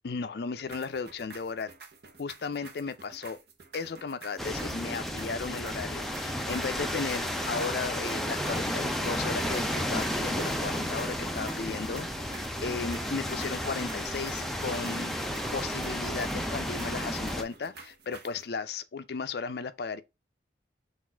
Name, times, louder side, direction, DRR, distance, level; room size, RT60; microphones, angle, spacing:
voice 1, 0.0-1.7 2.2-3.4 3.7-15.1 15.5-20.0, left 5 dB, 60° left, 0.4 m, -35 dB
sound 1, 0.7-18.5, right 4 dB, 60° right, 0.8 m, -50 dB
sound 2, 4.4-17.4, equal, ahead, 0.4 m, -32 dB
4.1 x 2.5 x 4.3 m
head